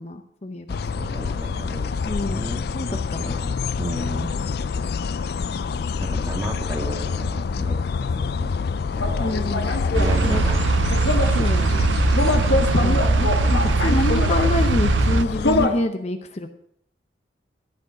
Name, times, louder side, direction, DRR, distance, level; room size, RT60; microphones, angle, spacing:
voice 1, 0.0-0.8 2.0-2.5 2.7-3.4 9.2-9.7 10.2-10.4 11.3-12.0 12.6-16.5, left 1 dB, 35° left, 7 dB, 0.7 m, -27 dB
sound 1, 0.7-15.7, left 5 dB, 60° left, 0.4 m, -26 dB
voice 2, 0.7-1.9 2.2-3.5 3.8-4.3 6.0-7.8 8.2-8.5 9.0-9.2 10.0-10.7 12.2-12.7, equal, 15° right, 0 dB, 2.0 m, -33 dB
sound 2, 8.9-15.8, left 2 dB, 75° left, 1.3 m, -26 dB
sound 3, 9.9-15.2, right 4 dB, 85° right, 0.6 m, -21 dB
14.5 x 5.2 x 8.3 m, 0.71 s
head